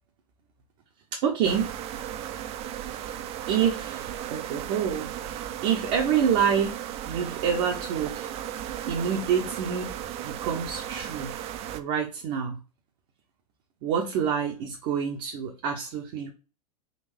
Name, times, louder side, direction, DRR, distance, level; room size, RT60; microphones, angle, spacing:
voice 1, 1.1-1.7 2.9-3.0 3.5-6.8 7.1-8.3 8.9-9.9 10.2-11.3 11.7-12.6 13.8-16.3, right 7 dB, 50° right, 2 dB, 0.9 m, -27 dB
sound 1, 1.4-11.8, right 11 dB, 30° right, 0.4 m, -36 dB
4.0 x 2.5 x 3.5 m, 0.34 s
hypercardioid pair, 110°, 20 cm